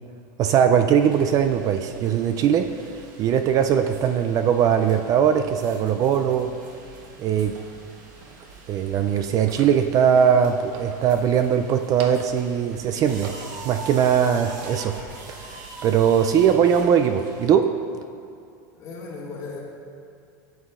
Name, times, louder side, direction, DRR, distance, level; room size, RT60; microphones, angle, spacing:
voice 1, 0.4-6.5 7.2-7.6 8.7-13.3 13.6-15.0 15.3-17.7, right 8 dB, 35° right, 7 dB, 0.3 m, -20 dB
sound 1, 1.0-17.5, right 3 dB, 75° right, 1.3 m, -43 dB
sound 2, 8.0-8.6 9.3-9.8 10.6-11.5 11.8-12.4 12.9-13.8 14.3-15.1, right 4 dB, 55° right, 0.9 m, -43 dB
voice 2, 18.7-19.6, left 4 dB, 35° left, -3 dB, 1.9 m, -36 dB
11.0 x 8.2 x 2.5 m, 2.4 s
supercardioid pair, 130°, 10 cm